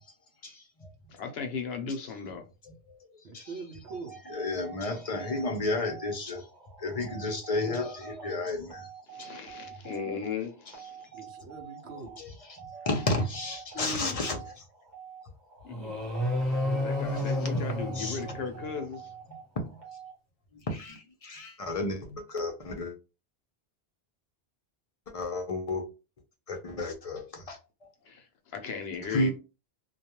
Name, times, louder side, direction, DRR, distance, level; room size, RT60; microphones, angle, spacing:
voice 1, 0.4-0.9 2.9-3.0 3.3-3.6 4.2-6.4 6.8-8.9 9.2-9.3 11.9-14.4 17.1-17.2 18.0-18.2 19.6-19.7 20.7-22.9 25.1-25.8 26.5-27.6 29.1-29.3, left 2 dB, 40° left, 0.6 m, -32 dB
voice 2, 1.1-2.5 9.1-11.1 13.7-14.2 15.6-16.4 16.7-19.1 28.0-29.3, left 5 dB, 75° left, 0.9 m, -37 dB
voice 3, 3.2-4.2 11.1-12.2, right 4 dB, 80° right, 0.9 m, -43 dB
sound 1, 3.9-20.1, right 8 dB, 50° right, 0.9 m, -47 dB
sound 2, 15.7-19.0, left 1 dB, ahead, 0.9 m, -31 dB
2.3 x 2.3 x 2.9 m
omnidirectional pair, 1.1 m